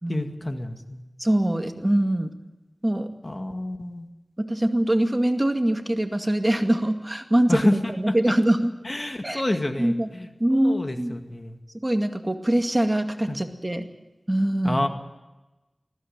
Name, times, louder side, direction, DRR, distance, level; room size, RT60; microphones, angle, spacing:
voice 1, 0.1-1.0 3.2-4.1 7.5-8.1 8.8-11.6 13.3-13.4 14.6-14.9, left 1 dB, 40° left, 6 dB, 2.1 m, -28 dB
voice 2, 1.2-2.3 2.8-3.1 4.4-7.6 7.9-8.7 9.2-9.4 9.8-10.1 10.4-11.2 11.7-13.9 14.3-14.8, right 1 dB, 25° right, 5 dB, 2.2 m, -23 dB
20.0 x 15.5 x 8.9 m, 1.1 s
wide cardioid pair, 50°, 0 cm